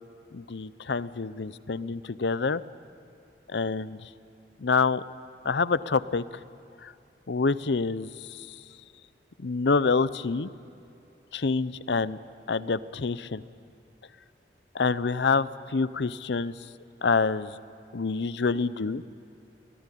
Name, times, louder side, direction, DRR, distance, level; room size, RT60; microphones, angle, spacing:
voice 1, 0.3-2.6 3.5-4.1 4.6-5.0 5.4-6.2 6.8-6.9 7.3-8.5 9.4-10.5 11.3-12.2 12.5-13.4 14.7-16.6 17.0-17.6 17.9-19.0, left 4 dB, 75° left, 16 dB, 0.6 m, -27 dB
24.5 x 17.5 x 10.0 m, 2.6 s
head